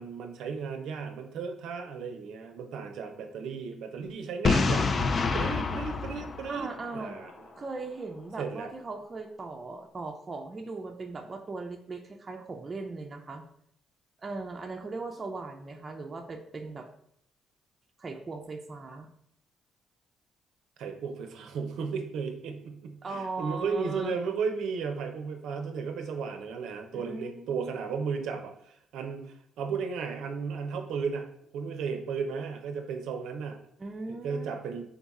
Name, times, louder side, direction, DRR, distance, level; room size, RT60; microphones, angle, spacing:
voice 1, 0.0-4.9 5.3-7.3 8.4-8.7 20.8-31.3 31.5-33.6 34.1-34.8, right 5 dB, 85° right, 5 dB, 0.5 m, -34 dB
Boom, 4.4-7.3, left 4 dB, 45° left, 0.4 m, -27 dB
voice 2, 6.5-7.2 7.6-13.4 14.2-16.9 18.0-19.1 23.0-24.1 26.9-27.7 33.8-34.5, right 3 dB, 35° right, 3 dB, 0.5 m, -38 dB
3.8 x 2.3 x 4.0 m, 0.71 s
cardioid pair, 90°, 0 cm